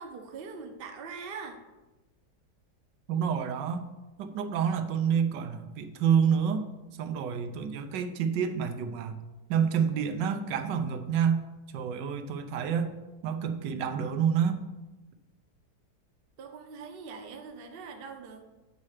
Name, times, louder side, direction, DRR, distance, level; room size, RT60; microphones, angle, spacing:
voice 1, 0.0-1.6 16.4-18.4, right 5 dB, 50° right, 5 dB, 0.7 m, -42 dB
voice 2, 3.1-3.8 4.2-6.7 7.0-9.2 9.5-11.4 11.7-12.9 13.2-14.6, right 7 dB, 90° right, 8 dB, 1.3 m, -28 dB
8.6 x 4.2 x 4.8 m, 1.1 s
omnidirectional pair, 1.9 m